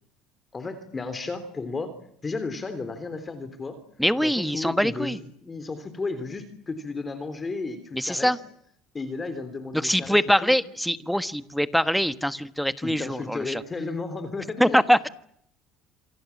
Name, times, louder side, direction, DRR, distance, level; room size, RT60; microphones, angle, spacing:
voice 1, 0.5-1.9 2.2-3.8 4.2-8.4 8.9-10.6 12.8-14.8, left 3 dB, 25° left, 10 dB, 3.5 m, -33 dB
voice 2, 4.0-5.2 7.9-8.4 9.7-13.6 14.6-15.1, equal, ahead, 13 dB, 1.3 m, -23 dB
27.5 x 24.0 x 7.3 m, 0.72 s
cardioid pair, 115°, 0 cm